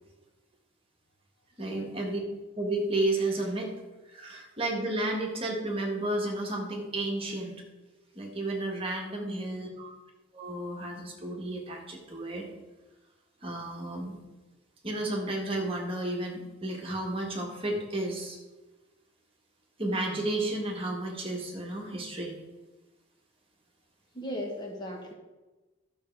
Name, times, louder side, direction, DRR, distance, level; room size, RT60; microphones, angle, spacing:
voice 1, 1.6-2.2 2.6-3.7 4.1-7.5 8.1-9.9 10.3-12.4 13.4-14.2 14.8-18.4 19.8-22.3, right 2 dB, 25° right, 0 dB, 1.7 m, -32 dB
voice 2, 9.2-9.9 24.1-25.1, equal, 20° left, 1 dB, 1.2 m, -38 dB
12.0 x 6.8 x 4.6 m, 1.2 s
head